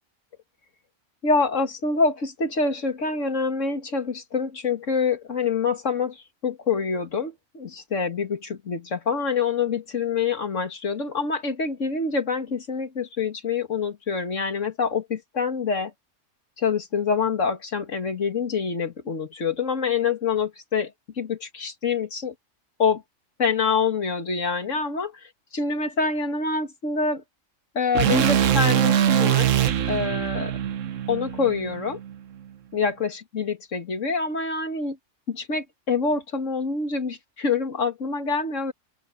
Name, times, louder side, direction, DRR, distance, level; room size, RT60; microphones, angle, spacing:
voice 1, 1.2-15.9 16.6-22.3 22.8-23.0 23.4-25.1 25.5-27.2 27.7-29.6 29.9-30.6 31.1-32.0 32.7-35.0 35.3-38.7, left 5 dB, 80° left, 2.4 m, -26 dB
sound 1, 27.9-32.1, right 10 dB, 85° right, 1.2 m, -22 dB
open air
omnidirectional pair, 1.3 m